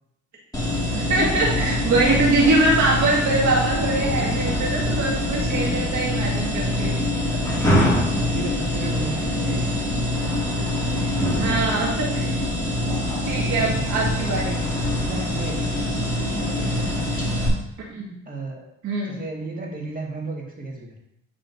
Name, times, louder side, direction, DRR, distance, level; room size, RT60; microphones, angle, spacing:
sound 1, 0.5-17.5, left 1 dB, 10° left, 2.1 m, -24 dB
voice 1, 1.0-7.0 9.4-9.6 11.4-12.4 13.3-14.6 17.8-18.1 18.8-19.2, right 2 dB, 70° right, -3 dB, 2.0 m, -23 dB
voice 2, 8.2-9.8 13.6-13.8 14.9-17.0 18.2-18.6 19.0-20.9, right 2 dB, 30° right, -1 dB, 1.9 m, -34 dB
11.0 x 3.7 x 2.7 m, 0.80 s
cardioid pair, 90°, 30 cm